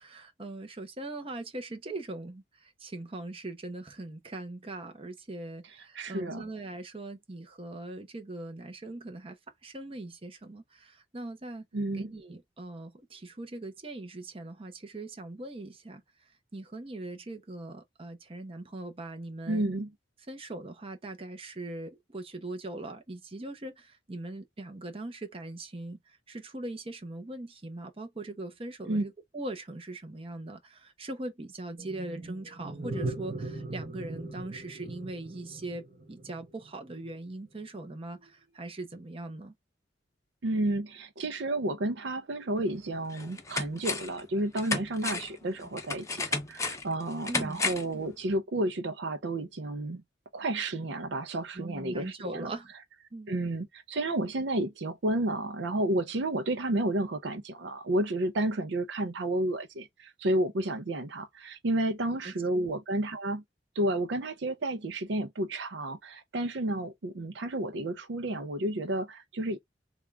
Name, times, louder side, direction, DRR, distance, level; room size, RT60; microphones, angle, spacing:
voice 1, 0.0-9.4 9.6-11.6 11.9-16.0 16.5-19.7 20.3-39.5 47.3-47.6 51.5-52.7 53.1-53.3 62.2-62.7, right 2 dB, 30° right, 0.8 m, -41 dB
voice 2, 5.9-6.4 11.7-12.1 19.5-19.9 28.9-29.0 40.4-50.0 50.3-52.5 53.3-63.4 63.8-69.6, right 1 dB, 75° right, 0.5 m, -31 dB
sound 1, 31.8-37.1, right 2 dB, 50° right, 1.2 m, -39 dB
sound 2, 42.6-42.7 43.1-44.2 44.6-48.0 48.3-48.4, left 3 dB, 15° left, 0.7 m, -33 dB
3.6 x 2.4 x 3.2 m
head